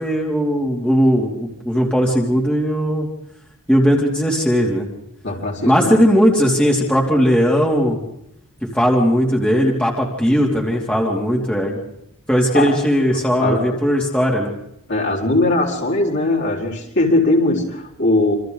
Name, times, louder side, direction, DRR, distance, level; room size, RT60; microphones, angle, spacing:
voice 1, 0.0-3.1 3.7-4.9 5.7-8.0 8.6-11.8 12.3-14.5, equal, 5° left, -2 dB, 2.9 m, -18 dB
voice 2, 5.2-6.0 12.5-12.8 13.1-13.8 14.9-18.4, left 2 dB, 55° left, -3 dB, 5.0 m, -20 dB
28.0 x 26.0 x 4.0 m, 0.80 s
head